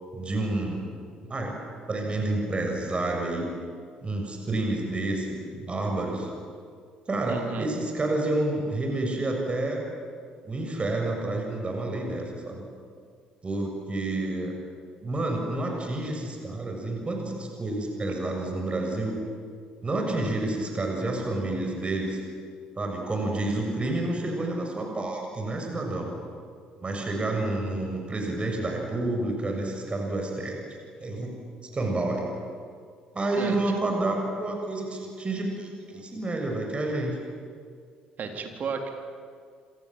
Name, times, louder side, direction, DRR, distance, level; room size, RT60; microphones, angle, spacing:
voice 1, 0.1-0.8 1.2-1.6 1.9-3.5 4.0-6.3 7.1-9.8 10.4-12.6 13.4-14.5 15.0-19.2 19.8-22.2 22.8-26.1 26.8-30.7 31.0-31.3 31.7-32.3 33.1-37.2, right 2 dB, 30° right, 1 dB, 7.0 m, -29 dB
voice 2, 7.3-7.7 33.4-33.6 33.9-34.0 38.2-38.9, right 5 dB, 45° right, 4 dB, 4.0 m, -33 dB
28.0 x 27.5 x 7.8 m, 2.2 s
figure-of-eight pair, 50°, 4 cm